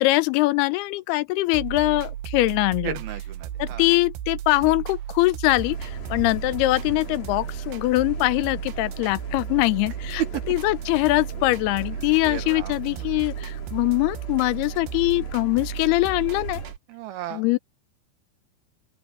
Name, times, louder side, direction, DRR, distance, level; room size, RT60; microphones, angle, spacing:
voice 1, 0.0-3.0 3.6-10.2 10.5-16.6 17.3-17.6, left 20 dB, 90° left, 2.6 m, -22 dB
sound 1, 1.5-16.8, right 11 dB, 90° right, 3.1 m, -34 dB
voice 2, 2.8-3.9 10.2-10.4 12.2-13.1 16.9-17.4, right 11 dB, 75° right, 3.3 m, -33 dB
Station Side Street London little-Traffic People, 5.5-16.7, left 4 dB, 65° left, 6.6 m, -42 dB
open air
omnidirectional pair, 4.6 m